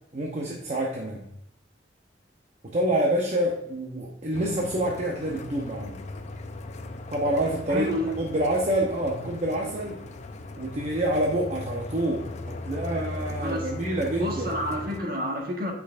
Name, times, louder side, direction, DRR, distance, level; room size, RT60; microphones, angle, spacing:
voice 1, 0.1-1.2 2.6-6.0 7.1-10.0 10.6-14.6, right 1 dB, 40° right, -1 dB, 0.8 m, -27 dB
sound 1, 4.3-15.0, left 2 dB, 40° left, 0.5 m, -38 dB
voice 2, 7.7-8.1 13.4-13.7 14.2-15.7, equal, 55° right, 1 dB, 1.5 m, -29 dB
8.5 x 5.8 x 2.5 m, 0.84 s
head